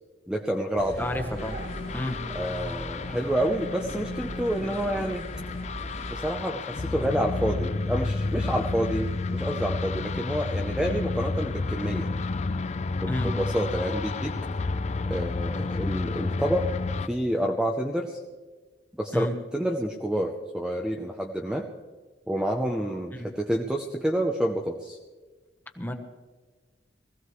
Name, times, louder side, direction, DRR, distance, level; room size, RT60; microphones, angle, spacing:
voice 1, 0.3-1.0 2.3-5.3 6.1-9.1 9.3-12.1 13.0-14.3 15.1-16.7 17.0-18.2 19.0-19.3 19.5-21.7 22.3-25.0, equal, 5° right, 1 dB, 0.7 m, -28 dB
sound 1, 0.8-6.3, equal, 55° right, 4.2 m, -38 dB
voice 2, 1.0-1.6 1.9-2.2 13.1-13.3 19.1-19.3 23.1-23.3 25.8-25.9, left 1 dB, 10° left, 4 dB, 1.1 m, -31 dB
sound 2, 1.4-17.1, left 3 dB, 40° left, 0.5 m, -31 dB
20.0 x 15.5 x 3.2 m, 1.3 s
head